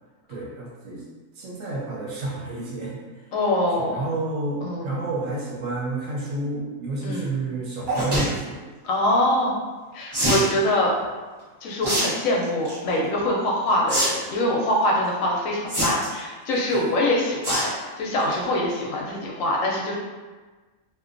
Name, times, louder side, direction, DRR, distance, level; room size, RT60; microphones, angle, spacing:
voice 1, 0.3-1.0 1.4-3.0 3.8-8.6 10.3-10.5 16.7-16.8, right 2 dB, 70° right, -4 dB, 1.0 m, -30 dB
voice 2, 3.3-4.1 4.6-5.0 7.0-7.3 8.8-9.5 9.9-10.9 11.6-20.0, left 1 dB, 75° left, -3 dB, 0.9 m, -24 dB
sound 1, 7.9-8.3 10.1-10.5 11.8-12.1 12.4-12.8 13.9-14.0 14.3-14.4 15.7-16.2 17.4-17.7 18.1-18.3 18.7-18.8 19.0-19.1, right 1 dB, 40° right, 0.3 m, -23 dB
2.7 x 2.2 x 2.5 m, 1.3 s
omnidirectional pair, 1.5 m